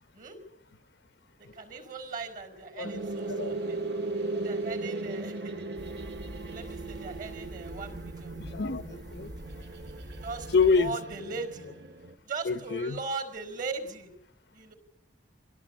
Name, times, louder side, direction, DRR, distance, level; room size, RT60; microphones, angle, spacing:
voice 1, 1.4-3.8 4.4-6.0 6.5-8.3 9.8-9.9 10.2-11.7 12.2-14.1 14.5-14.7, right 4 dB, 45° right, 5.0 m, -39 dB
sound 1, 2.8-12.1, right 2 dB, 65° right, 1.8 m, -37 dB
sound 2, 5.8-10.9, equal, 20° right, 1.1 m, -45 dB
voice 2, 8.4-9.3 10.5-10.9 12.5-13.0, left 4 dB, 65° left, 0.8 m, -26 dB
25.5 x 17.0 x 9.0 m
head